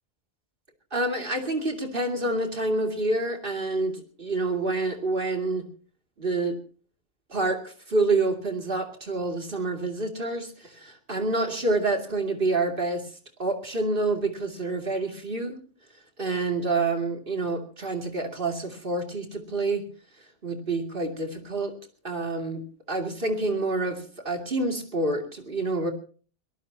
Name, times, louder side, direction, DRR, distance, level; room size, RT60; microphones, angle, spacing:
voice 1, 0.9-5.7 6.2-6.6 7.3-13.1 13.4-15.6 16.2-19.8 20.4-21.7 22.0-22.6 22.9-25.9, right 2 dB, 50° right, 3 dB, 2.8 m, -27 dB
23.0 x 18.5 x 2.8 m, 0.40 s
omnidirectional pair, 1.2 m